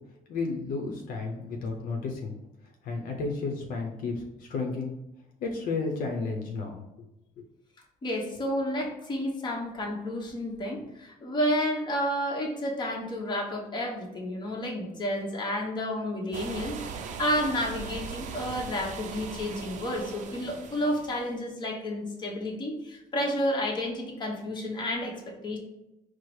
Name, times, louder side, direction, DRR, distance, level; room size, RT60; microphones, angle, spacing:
voice 1, 0.3-2.3 2.8-4.9 5.4-6.8 7.4-7.5, left 3 dB, 75° left, 1 dB, 0.7 m, -32 dB
voice 2, 8.0-25.2 25.4-25.6, equal, 30° left, -1 dB, 1.0 m, -31 dB
sound 1, 16.3-21.4, right 6 dB, 55° right, 0.5 m, -39 dB
4.6 x 2.0 x 4.6 m, 0.91 s
cardioid pair, 130°, 15 cm